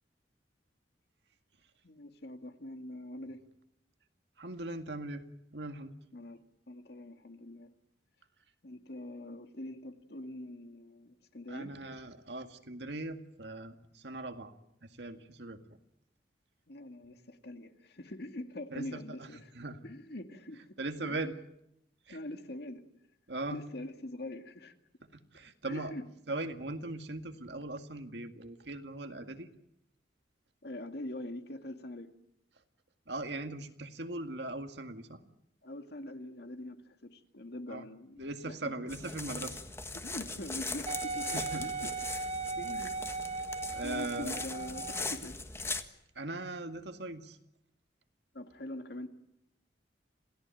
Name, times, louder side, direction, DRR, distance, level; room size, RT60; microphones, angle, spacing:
voice 1, 1.8-3.4 6.1-6.4 6.7-7.7 8.6-11.7 16.7-19.5 19.8-20.6 21.0-21.3 22.1-22.8 23.5-24.7 25.7-26.0 30.6-32.1 35.6-39.0 39.9-41.9 42.6-42.9 43.8-45.4 48.3-49.1, left 1 dB, 60° left, 7 dB, 2.2 m, -43 dB
voice 2, 4.4-5.2 5.5-5.9 11.5-14.5 14.8-15.6 18.7-19.0 19.6-19.8 20.8-21.3 22.1-22.2 23.3-23.6 25.1-25.9 26.3-29.5 33.1-35.2 37.7-37.8 38.2-39.6 41.3-41.6 43.7-44.4 46.2-47.4, right 2 dB, 70° right, 7 dB, 2.0 m, -39 dB
sound 1, 38.9-45.8, left 3 dB, 15° left, 1.6 m, -40 dB
Wind instrument woodwind instrument, 40.9-45.2 45.8-45.9, right 4 dB, 40° right, 3.2 m, -37 dB
27.5 x 17.0 x 9.1 m, 0.81 s
head